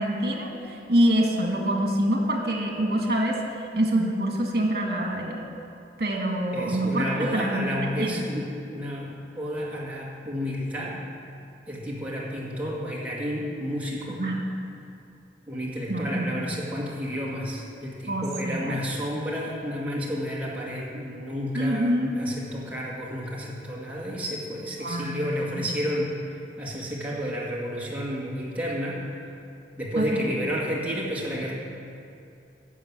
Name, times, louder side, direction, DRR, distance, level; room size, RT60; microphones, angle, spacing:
voice 1, 0.0-3.4 3.7-5.4 6.0-7.7 8.0-8.3 14.2-14.4 15.9-16.4 18.1-18.8 21.5-22.1 24.8-25.6 30.0-30.3, right 1 dB, 60° right, 1 dB, 2.0 m, -25 dB
voice 2, 6.5-11.0 11.7-14.2 15.5-26.1 26.6-29.0 29.8-31.5, equal, 10° right, -5 dB, 2.1 m, -31 dB
11.0 x 6.9 x 8.3 m, 2.6 s
head